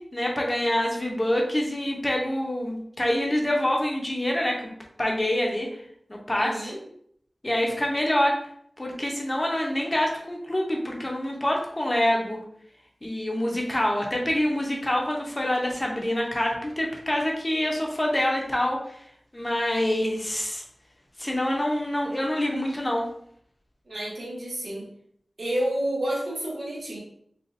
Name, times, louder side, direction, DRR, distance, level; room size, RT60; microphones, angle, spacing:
voice 1, 0.1-4.7 5.0-5.7 6.1-6.7 7.4-8.4 8.8-12.4 13.0-18.9 19.3-20.6 21.2-23.0, left 1 dB, 25° left, 0 dB, 0.8 m, -26 dB
voice 2, 6.4-6.8 23.9-24.9 25.4-27.0, right 1 dB, 80° right, -5 dB, 1.3 m, -30 dB
4.0 x 2.4 x 2.6 m, 0.67 s
wide cardioid pair, 65°, 0 cm